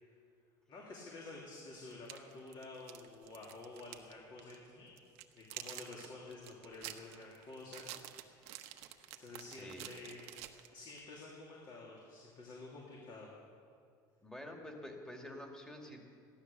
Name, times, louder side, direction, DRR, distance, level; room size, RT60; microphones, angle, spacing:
voice 1, 0.7-5.0 5.3-10.3 10.7-13.3, left 3 dB, 45° left, -3 dB, 3.0 m, -51 dB
sound 1, 1.1-1.2 1.9-4.1 4.4-4.6 5.0-11.0, right 13 dB, 70° right, 1.1 m, -49 dB
voice 2, 14.2-16.1, left 1 dB, 5° left, 1 dB, 2.4 m, -48 dB
15.5 x 12.0 x 6.9 m, 2.3 s
supercardioid pair, 115°, 11 cm